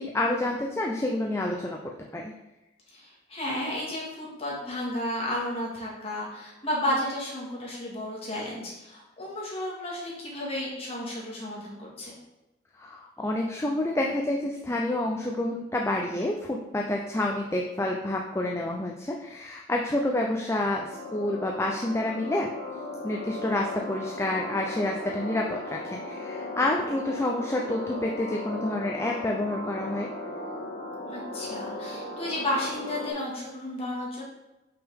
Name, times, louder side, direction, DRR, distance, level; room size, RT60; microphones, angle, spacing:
voice 1, 0.0-1.8 2.1-2.3 12.8-22.5 23.0-30.1, left 1 dB, 15° left, 0 dB, 0.4 m, -28 dB
voice 2, 2.9-12.1 31.1-34.2, left 1 dB, 30° left, -5 dB, 1.9 m, -32 dB
sound 1, 20.8-33.1, left 2 dB, 85° left, 1.6 m, -37 dB
5.7 x 5.5 x 3.6 m, 0.99 s
head